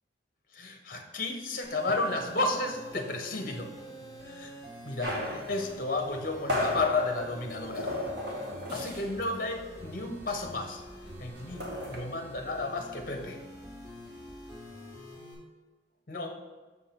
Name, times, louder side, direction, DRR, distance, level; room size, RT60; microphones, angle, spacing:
voice 1, 0.5-3.7 4.2-4.5 4.8-7.9 8.7-10.8 11.2-11.6 11.9-13.4 16.1-16.4, left 2 dB, 50° left, 5 dB, 0.9 m, -32 dB
sound 1, 1.6-15.3, equal, 15° right, 2.2 m, -46 dB
sound 2, 5.0-9.3 9.5-9.8 10.0-12.0, left 1 dB, 60° right, 1.5 m, -35 dB
6.8 x 3.6 x 5.9 m, 1.3 s
head